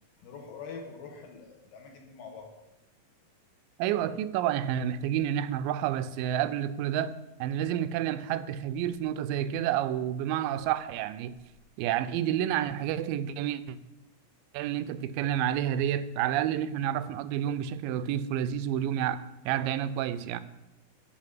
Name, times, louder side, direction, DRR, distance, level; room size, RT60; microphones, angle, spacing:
voice 1, 0.2-2.6, left 5 dB, 70° left, 2.8 m, -44 dB
voice 2, 3.8-11.4 11.8-13.8 14.5-20.4, right 10 dB, 85° right, 2.2 m, -29 dB
11.5 x 4.2 x 7.4 m
omnidirectional pair, 4.0 m